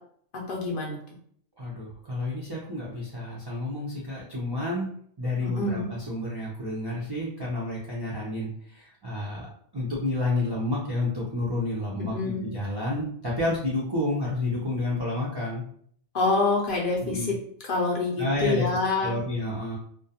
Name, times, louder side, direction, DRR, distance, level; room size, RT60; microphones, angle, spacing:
voice 1, 0.3-1.0 5.4-5.9 12.0-12.4 16.1-17.4 17.6-19.2, left 3 dB, 60° left, -1 dB, 0.6 m, -26 dB
voice 2, 1.6-4.9 5.2-9.5 9.7-12.1 12.4-15.6 17.0-17.4 18.2-18.7 19.0-19.8, left 2 dB, 40° right, -6 dB, 0.3 m, -30 dB
2.3 x 2.1 x 2.7 m, 0.62 s
omnidirectional pair, 1.2 m